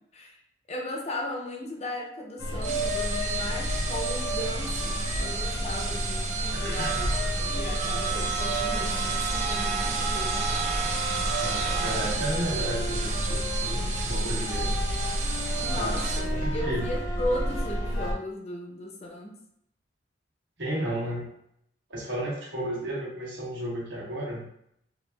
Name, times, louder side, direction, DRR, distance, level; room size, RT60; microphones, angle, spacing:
voice 1, 0.7-10.5 15.6-19.4, left 1 dB, 35° left, 1 dB, 0.5 m, -36 dB
sound 1, 2.4-18.1, equal, 85° left, 0.7 m, -30 dB
sound 2, 2.5-16.2, right 5 dB, 35° right, 0.4 m, -32 dB
voice 2, 6.5-6.9 11.4-14.8 15.7-16.9 20.6-21.3 21.9-24.5, right 1 dB, 80° right, -6 dB, 1.3 m, -33 dB
5.0 x 2.2 x 2.2 m, 0.74 s
head